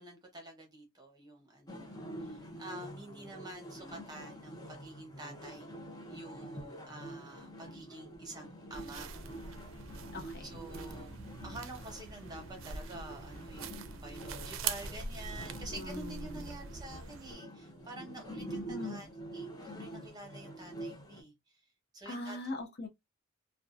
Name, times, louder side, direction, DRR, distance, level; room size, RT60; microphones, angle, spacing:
voice 1, 0.0-1.8 2.2-5.8 6.1-9.2 9.9-10.0 10.4-11.1 11.4-21.6 21.9-22.4, right 1 dB, 20° right, 0.9 m, -48 dB
sound 1, 1.7-21.2, right 1 dB, 20° left, 0.6 m, -47 dB
sound 2, 8.7-17.3, right 5 dB, 90° right, 0.4 m, -43 dB
voice 2, 10.1-10.6 15.8-16.6 18.7-19.0 22.1-22.9, left 2 dB, 55° left, 0.7 m, -41 dB
2.6 x 2.1 x 2.4 m
head